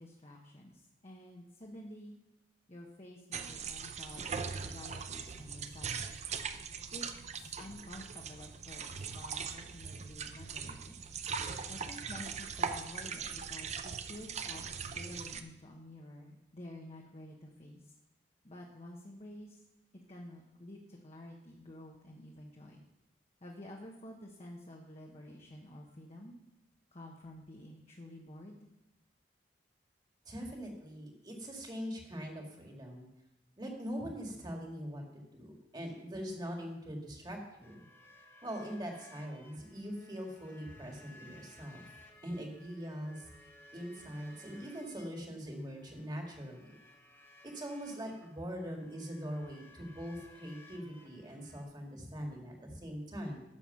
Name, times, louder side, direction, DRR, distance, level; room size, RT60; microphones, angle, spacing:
voice 1, 0.0-2.1 2.7-6.2 6.9-7.1 7.4-11.1 11.7-17.9 18.4-19.6 19.9-22.8 23.4-26.3 26.9-28.6, left 1 dB, 35° left, -1 dB, 1.1 m, -50 dB
sound 1, 3.3-15.4, right 6 dB, 40° right, 0.6 m, -40 dB
voice 2, 30.3-33.1 33.6-37.8 38.4-41.8 42.2-43.3 43.7-46.7 47.5-53.4, equal, 25° right, 1 dB, 2.0 m, -42 dB
sound 2, 37.6-51.6, left 1 dB, 15° left, 1.4 m, -59 dB
11.0 x 6.8 x 5.7 m, 0.90 s
head